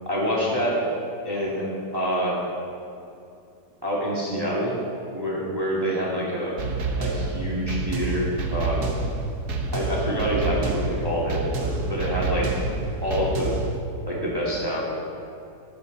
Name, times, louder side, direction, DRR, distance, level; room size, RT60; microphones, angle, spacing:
voice 1, 0.1-0.8 1.2-1.7 1.9-2.4 3.8-4.8 5.1-6.6 7.0-8.9 9.7-12.6 13.0-13.5 14.1-14.8, equal, 15° right, -6 dB, 2.5 m, -26 dB
sound 1, 6.6-13.8, right 3 dB, 65° right, 1.7 m, -28 dB
16.5 x 13.0 x 4.1 m, 2.6 s
omnidirectional pair, 1.8 m